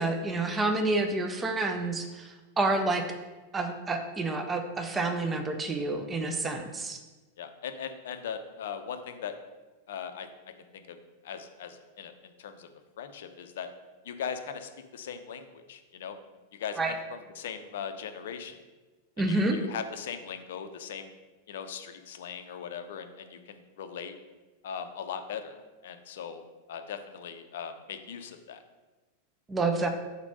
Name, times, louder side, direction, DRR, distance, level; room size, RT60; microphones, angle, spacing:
voice 1, 0.0-3.0 3.5-7.0 16.8-16.9 19.2-19.6 29.5-29.9, right 2 dB, 15° right, 6 dB, 0.7 m, -29 dB
voice 2, 7.4-9.4 9.9-10.3 10.7-11.0 11.2-12.7 13.0-13.7 14.0-16.2 16.5-18.6 19.2-21.1 21.5-24.1 24.6-25.6 25.8-26.4 26.7-28.6, left 7 dB, 60° left, 8 dB, 0.6 m, -39 dB
5.1 x 4.4 x 5.3 m, 1.2 s
figure-of-eight pair, 90°, 0 cm